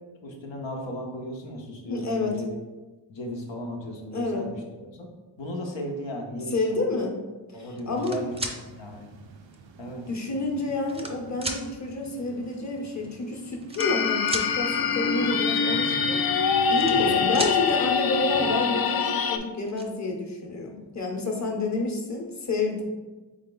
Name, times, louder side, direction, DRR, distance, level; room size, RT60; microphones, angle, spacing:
voice 1, 0.2-2.5 3.1-5.1 5.4-7.0 7.5-9.1 9.8-10.1 16.8-17.2, left 1 dB, 80° left, 0 dB, 0.9 m, -36 dB
voice 2, 1.9-2.3 4.1-4.5 6.5-7.1 7.5-8.2 10.1-16.2 16.7-22.8, left 2 dB, 40° left, 1 dB, 0.9 m, -29 dB
sound 1, 7.8-8.6 9.5-9.6 10.5-11.1 11.4-11.6 12.8-12.9 13.0-13.2 13.6-14.5 16.4-17.1 17.3-17.6 19.0-19.1 19.4-19.8, right 1 dB, 15° right, 0.6 m, -33 dB
sound 2, 7.9-18.8, right 4 dB, 85° right, 0.6 m, -44 dB
sound 3, 13.8-19.4, left 6 dB, 55° left, 0.5 m, -24 dB
3.8 x 3.6 x 3.8 m, 1.2 s
cardioid pair, 60°, 44 cm